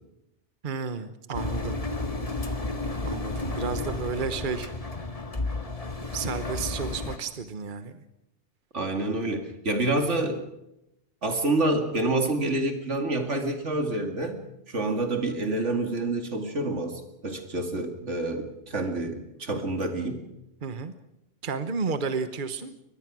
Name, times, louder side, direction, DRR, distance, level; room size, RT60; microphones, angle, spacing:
voice 1, 0.6-1.8 3.0-4.7 6.1-8.0 20.6-20.9 21.4-22.7, right 5 dB, 45° right, 10 dB, 1.2 m, -32 dB
Engine, 1.3-7.2, left 2 dB, 30° left, 1.8 m, -32 dB
voice 2, 8.7-10.4 11.2-20.3, right 2 dB, 80° right, 6 dB, 2.7 m, -28 dB
23.5 x 20.5 x 6.2 m, 0.88 s
omnidirectional pair, 1.2 m